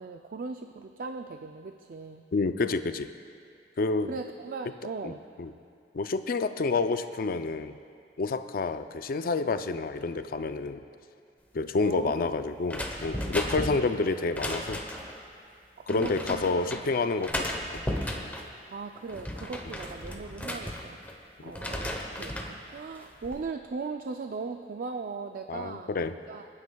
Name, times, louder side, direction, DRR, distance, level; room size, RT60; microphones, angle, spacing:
voice 1, 0.0-2.3 4.1-5.2 11.8-12.3 15.8-16.4 18.7-21.0 21.4-25.9 26.3-26.5, right 4 dB, 55° right, 6 dB, 0.4 m, -38 dB
voice 2, 2.3-3.1 3.8-4.2 5.0-5.5 5.9-7.8 8.2-10.8 11.5-14.8 15.9-17.5 21.4-21.5 25.5-26.1, left 3 dB, 55° left, 10 dB, 0.4 m, -29 dB
sound 1, 12.7-15.2 15.9-16.8 17.2-18.5 19.0-21.2 21.5-22.6 23.0-23.4, left 1 dB, 10° left, 0.9 m, -35 dB
27.5 x 9.6 x 2.3 m, 2.3 s
head